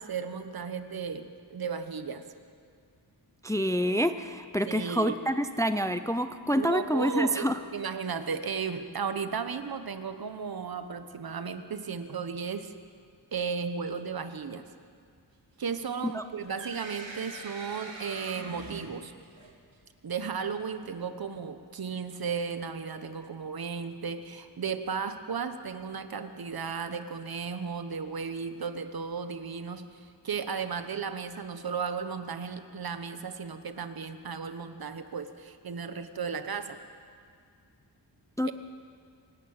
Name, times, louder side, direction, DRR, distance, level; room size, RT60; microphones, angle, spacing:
voice 1, 0.0-2.3 4.7-5.2 6.5-12.7 13.3-14.7 15.6-19.1 20.0-36.8 38.4-38.5, right 6 dB, 55° right, 10 dB, 1.1 m, -35 dB
voice 2, 3.4-7.6 16.1-16.2 38.4-38.5, equal, 10° left, 10 dB, 0.5 m, -27 dB
sound 1, 16.1-19.7, right 3 dB, 85° right, 2.9 m, -43 dB
26.0 x 11.5 x 8.8 m, 2.2 s
wide cardioid pair, 165°, 43 cm